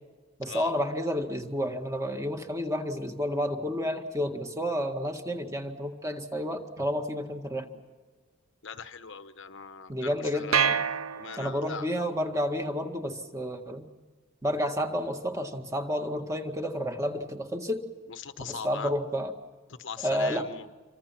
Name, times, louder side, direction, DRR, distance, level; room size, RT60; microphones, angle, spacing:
voice 1, 0.4-7.7 9.9-10.8 11.4-13.9 14.4-17.8 18.5-19.3 20.0-20.5, equal, 15° right, 5 dB, 1.9 m, -30 dB
voice 2, 8.6-10.6 11.2-11.9 18.1-18.9 19.7-20.7, left 6 dB, 55° left, 10 dB, 1.0 m, -40 dB
sound 1, 10.5-11.9, right 7 dB, 70° right, 0.8 m, -27 dB
28.0 x 25.0 x 6.0 m, 1.4 s
head